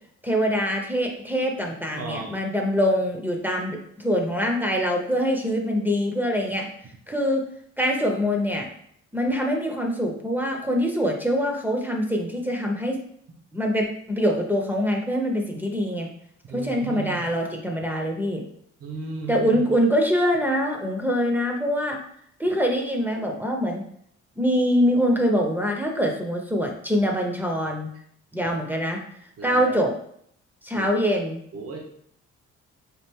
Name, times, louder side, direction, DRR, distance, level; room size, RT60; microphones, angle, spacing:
voice 1, 0.2-6.7 7.1-7.4 7.8-8.7 9.1-13.0 13.5-16.1 16.5-18.4 19.3-22.0 22.4-23.9 24.4-27.9 28.3-29.0 29.4-29.9 30.6-31.4, equal, 5° right, 1 dB, 0.7 m, -24 dB
voice 2, 1.9-2.4 16.5-17.3 18.8-19.6 29.4-29.7 30.7-30.9 31.5-31.8, right 4 dB, 55° right, 1 dB, 0.8 m, -35 dB
4.3 x 2.4 x 3.5 m, 0.68 s
cardioid pair, 90°, 30 cm